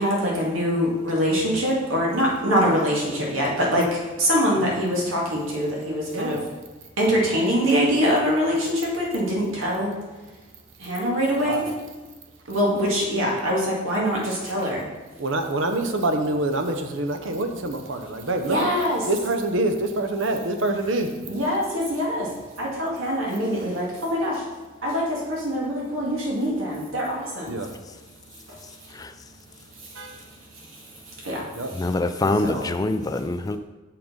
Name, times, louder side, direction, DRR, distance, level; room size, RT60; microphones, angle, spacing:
voice 1, 0.0-6.4 7.0-9.9 10.8-11.7 12.5-14.9 18.4-19.1 21.3-22.3 22.6-24.4 24.8-27.6 28.5-28.6 30.7-30.8 31.2-31.8 32.3-32.7, equal, 85° right, -4 dB, 2.3 m, -24 dB
voice 2, 6.1-6.5 11.4-11.7 15.2-18.7 19.1-21.1 27.5-27.7 30.0-30.1 31.5-31.7 32.2-32.3, right 2 dB, 70° right, 6 dB, 0.9 m, -26 dB
voice 3, 31.8-33.6, left 2 dB, 20° left, 9 dB, 0.3 m, -24 dB
6.7 x 5.8 x 5.3 m, 1.2 s
head